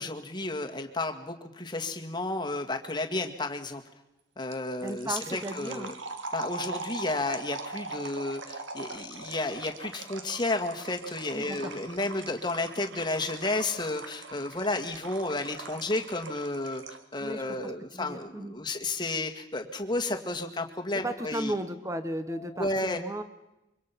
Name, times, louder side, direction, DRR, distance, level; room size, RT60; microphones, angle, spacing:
voice 1, 0.0-3.8 4.4-5.9 6.3-16.8 17.1-21.5 22.3-23.0, left 2 dB, 20° left, 4 dB, 1.9 m, -32 dB
sound 1, 4.5-17.1, right 3 dB, 70° right, 1.9 m, -41 dB
voice 2, 4.8-5.9 11.3-11.7 17.2-18.5 21.0-23.2, right 1 dB, 15° right, 10 dB, 1.3 m, -35 dB
25.5 x 24.0 x 5.9 m, 0.92 s
head